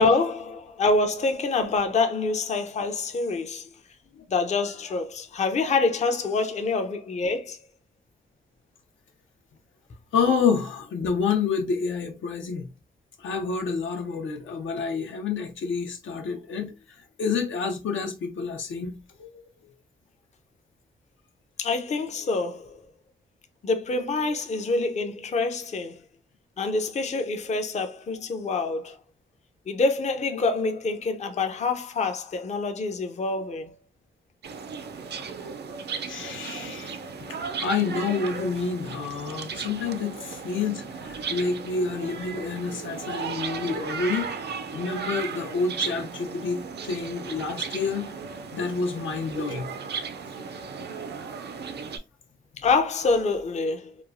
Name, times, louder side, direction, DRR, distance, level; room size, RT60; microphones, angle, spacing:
voice 1, 0.0-3.7 4.3-7.6 21.6-22.7 23.6-26.0 26.6-29.0 29.7-33.7 52.6-53.9, left 3 dB, 35° left, 0.4 m, -26 dB
voice 2, 10.1-12.7 13.2-16.7 17.2-19.4 22.2-22.3 30.3-30.4 35.4-35.5 36.1-44.3 44.7-46.6 46.8-48.1 48.5-49.7, left 5 dB, 90° left, 0.7 m, -28 dB
sound 1, 34.4-52.0, right 5 dB, 60° right, 0.4 m, -35 dB
3.0 x 2.3 x 2.5 m
wide cardioid pair, 95°, 19 cm